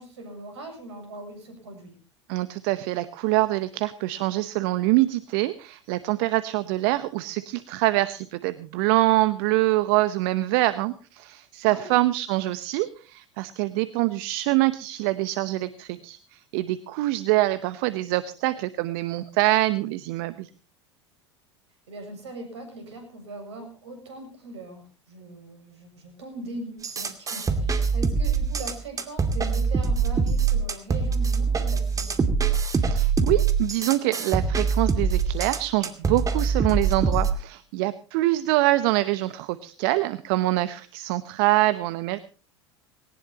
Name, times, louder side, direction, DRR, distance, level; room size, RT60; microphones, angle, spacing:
voice 1, 0.0-2.0 11.6-12.0 21.9-32.2, right 2 dB, 75° right, 6 dB, 7.0 m, -40 dB
voice 2, 2.3-20.5 32.7-42.2, right 18 dB, 55° right, 15 dB, 0.9 m, -25 dB
sound 1, 26.8-37.3, right 5 dB, 25° right, 2.4 m, -24 dB
20.0 x 18.5 x 2.9 m, 0.36 s
figure-of-eight pair, 75°, 15 cm